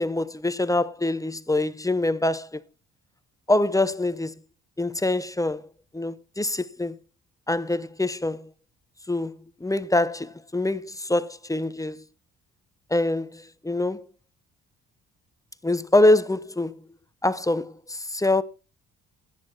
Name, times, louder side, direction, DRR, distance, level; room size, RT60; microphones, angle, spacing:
voice 1, 0.0-2.6 3.5-4.3 4.8-5.7 5.9-7.0 7.5-8.5 9.1-9.4 9.6-12.0 12.9-14.0 15.6-16.8 17.2-18.4, left 2 dB, 10° left, 0.8 m, -24 dB
14.5 x 10.0 x 4.3 m
cardioid pair, 90°, 30 cm